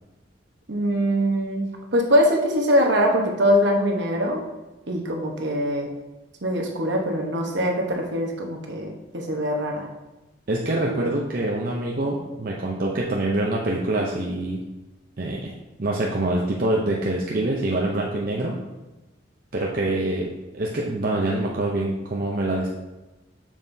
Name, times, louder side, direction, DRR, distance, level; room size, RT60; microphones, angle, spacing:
voice 1, 0.7-4.4 4.9-5.9 6.4-9.9, equal, 65° right, 1 dB, 1.1 m, -22 dB
voice 2, 10.5-14.6 15.2-15.5 15.8-18.6 19.5-22.7, right 2 dB, 50° right, -2 dB, 0.6 m, -25 dB
7.1 x 6.5 x 2.7 m, 1.1 s
head